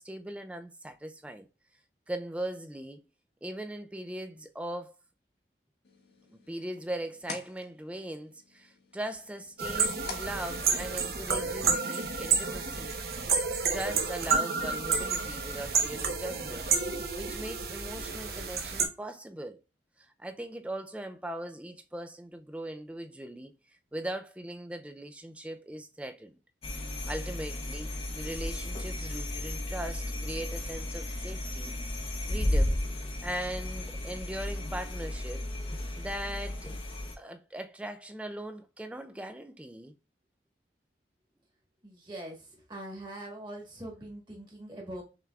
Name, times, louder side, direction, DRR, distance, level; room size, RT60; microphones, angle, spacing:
voice 1, 0.0-1.5 2.1-3.0 3.4-4.9 6.3-12.9 13.7-16.7 17.2-19.6 20.0-23.5 23.9-26.4 27.1-27.9 28.1-31.8 32.3-32.8 33.2-35.5 36.0-36.7 37.2-39.9, right 1 dB, 5° right, 0.3 m, -39 dB
sound 1, 5.8-11.3, left 4 dB, 70° left, 1.1 m, -48 dB
sound 2, 9.6-18.9, right 5 dB, 55° right, 0.8 m, -30 dB
sound 3, 26.6-37.1, left 1 dB, 30° left, 0.7 m, -34 dB
voice 2, 41.8-45.0, right 1 dB, 25° right, 1.4 m, -42 dB
5.7 x 3.4 x 2.3 m
head